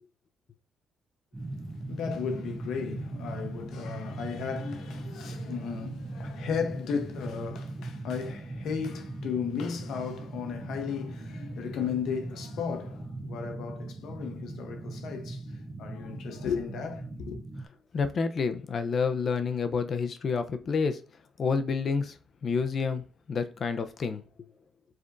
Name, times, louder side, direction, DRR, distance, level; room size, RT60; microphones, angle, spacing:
sound 1, 1.3-17.6, right 2 dB, 20° right, 0.6 m, -39 dB
voice 1, 1.4-17.4, left 6 dB, 80° left, 0.8 m, -35 dB
voice 2, 17.9-21.0 21.4-22.1 22.4-23.0 23.3-24.2, left 5 dB, 50° left, 0.6 m, -28 dB
5.1 x 3.5 x 2.5 m
cardioid pair, 90°, 0 cm